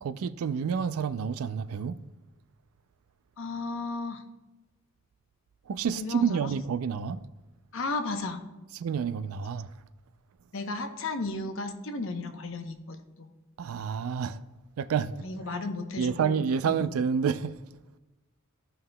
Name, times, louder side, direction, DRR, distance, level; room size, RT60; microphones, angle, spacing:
voice 1, 0.0-2.0 5.7-7.2 8.7-9.7 13.6-14.4 14.8-15.3 16.0-17.6, right 6 dB, 80° right, 0.4 m, -29 dB
voice 2, 3.4-4.2 6.0-6.5 7.7-8.4 10.5-13.3 15.2-16.8, left 3 dB, 65° left, 0.8 m, -34 dB
14.5 x 5.5 x 2.2 m
head